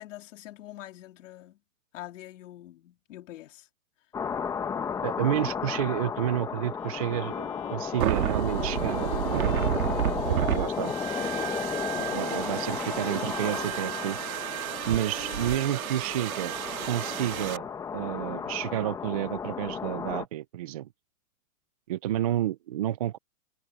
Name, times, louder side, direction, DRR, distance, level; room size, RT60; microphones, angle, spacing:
voice 1, 0.0-1.6 1.9-3.7, left 14 dB, 60° left, 3.5 m, -45 dB
sound 1, 4.1-20.2, left 6 dB, 10° left, 0.8 m, -34 dB
voice 2, 5.0-9.6 10.3-10.9 12.0-14.2 14.9-16.5 16.9-17.7 17.9-20.9 21.9-23.2, right 12 dB, 30° right, 0.4 m, -30 dB
Bowed string instrument, 6.8-16.5, left 21 dB, 30° left, 2.1 m, -47 dB
sound 2, 8.0-17.6, right 12 dB, 75° right, 1.6 m, -31 dB
hypercardioid pair, 160°, 42 cm